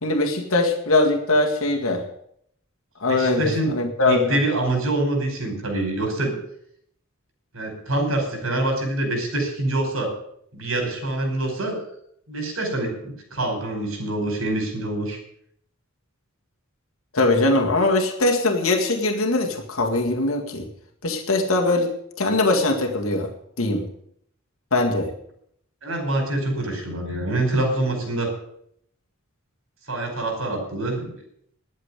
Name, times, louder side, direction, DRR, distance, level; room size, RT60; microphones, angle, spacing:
voice 1, 0.0-2.0 3.0-4.4 17.1-20.7 21.0-21.9 22.2-23.3 23.6-23.8 24.7-25.1, left 2 dB, 70° left, 2 dB, 2.0 m, -21 dB
voice 2, 3.0-6.3 7.5-10.1 10.5-11.8 12.3-15.2 25.8-28.3 29.9-31.1, right 2 dB, 70° right, 3 dB, 4.9 m, -25 dB
12.0 x 7.7 x 9.7 m, 0.70 s
head